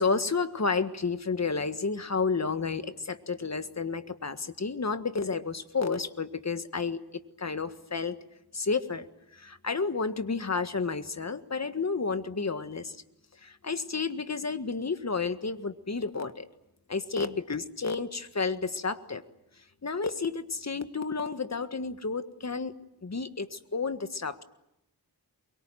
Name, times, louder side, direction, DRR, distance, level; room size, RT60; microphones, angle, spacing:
voice 1, 0.0-7.0 7.4-8.2 8.5-9.0 9.3-13.0 13.4-16.5 16.9-19.2 19.8-22.7 23.0-24.4, left 4 dB, 40° left, 10 dB, 1.6 m, -31 dB
23.5 x 23.0 x 9.1 m, 0.86 s
wide cardioid pair, 70°, 40 cm